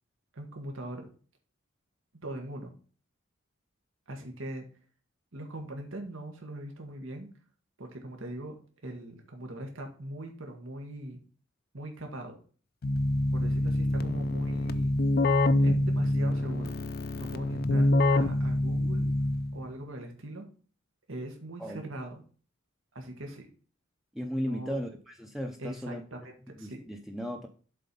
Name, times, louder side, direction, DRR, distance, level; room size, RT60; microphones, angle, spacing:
voice 1, 0.3-1.1 2.2-2.7 4.1-4.7 5.3-7.3 7.8-8.6 8.8-11.2 11.7-12.4 13.3-14.9 15.6-16.7 17.1-19.1 19.5-20.5 21.1-22.2 22.9-23.5 24.4-24.8 25.6-26.8, right 1 dB, 80° right, 3 dB, 1.7 m, -41 dB
Keyboard (musical), 12.8-19.7, left 1 dB, 50° left, 0.5 m, -26 dB
voice 2, 24.1-26.0 26.6-27.5, equal, ahead, 2 dB, 0.6 m, -35 dB
7.5 x 4.3 x 5.4 m, 0.40 s
head